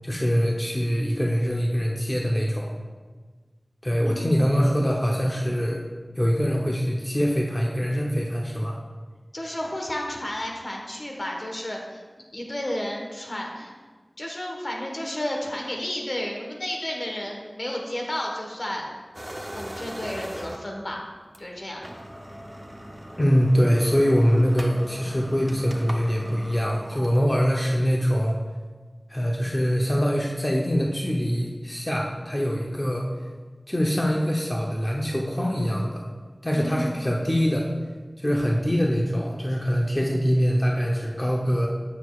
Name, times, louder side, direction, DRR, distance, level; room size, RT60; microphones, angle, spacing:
voice 1, 0.0-2.7 3.8-5.8 6.2-8.8 23.2-28.4 29.1-33.0 33.7-36.0 36.4-37.7 38.2-41.7, equal, 25° left, -2 dB, 0.7 m, -23 dB
voice 2, 4.0-4.5 9.3-12.0 12.3-13.7 14.2-18.9 19.5-21.1 21.4-21.8 36.5-37.0, left 1 dB, 60° left, 0 dB, 1.2 m, -32 dB
sound 1, 19.1-20.8 21.3-21.4 21.7-27.9, equal, 20° right, 0.6 m, -39 dB
9.3 x 6.2 x 2.4 m, 1.4 s
wide cardioid pair, 40°, 0 cm